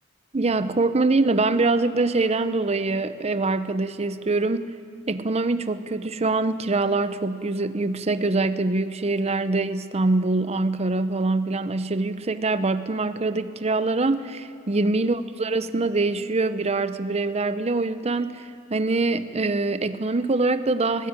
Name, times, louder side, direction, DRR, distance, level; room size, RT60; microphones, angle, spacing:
voice 1, 0.3-4.7 5.1-21.1, right 3 dB, 30° right, 12 dB, 0.7 m, -24 dB
19.0 x 18.5 x 9.0 m, 2.5 s
head